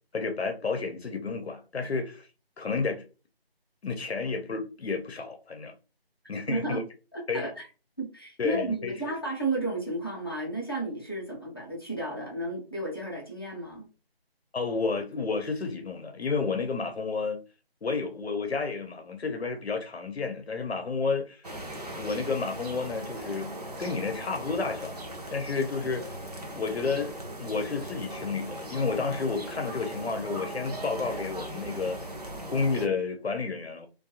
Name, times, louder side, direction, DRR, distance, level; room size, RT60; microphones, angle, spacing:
voice 1, 0.1-2.3 2.6-3.0 3.8-5.7 6.3-6.8 7.3-7.5 8.4-8.9 14.5-17.4 17.8-21.5 21.9-23.5 23.8-24.9 25.3-26.2 26.6-32.0 32.5-33.9, left 4 dB, 85° left, 0.6 m, -31 dB
voice 2, 6.5-6.9 7.1-7.7 8.0-13.9, right 2 dB, 25° left, 0.5 m, -33 dB
sound 1, 21.4-32.9, right 1 dB, 40° right, 0.5 m, -39 dB
2.4 x 2.2 x 2.7 m
figure-of-eight pair, 160°, 31 cm